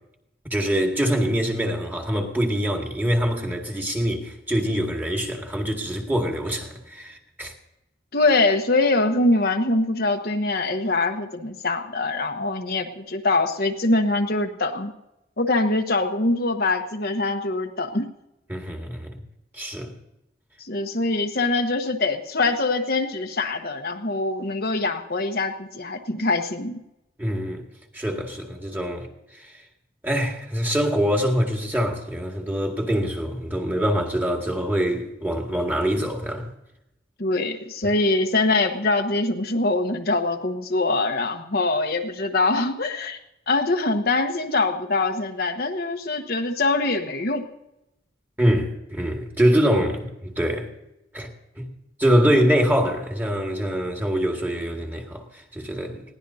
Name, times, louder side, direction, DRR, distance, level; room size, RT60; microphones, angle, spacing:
voice 1, 0.5-7.5 18.5-19.2 19.5-19.9 27.2-27.6 27.9-29.1 29.3-29.5 30.0-36.5 48.4-50.7 51.1-51.3 51.6-51.7 52.0-56.0, equal, 10° right, 1.9 m, -24 dB
voice 2, 8.1-14.9 15.4-18.1 20.6-26.8 37.2-43.2 43.5-47.4, left 2 dB, 55° left, 1.1 m, -23 dB
21.0 x 16.5 x 2.8 m
head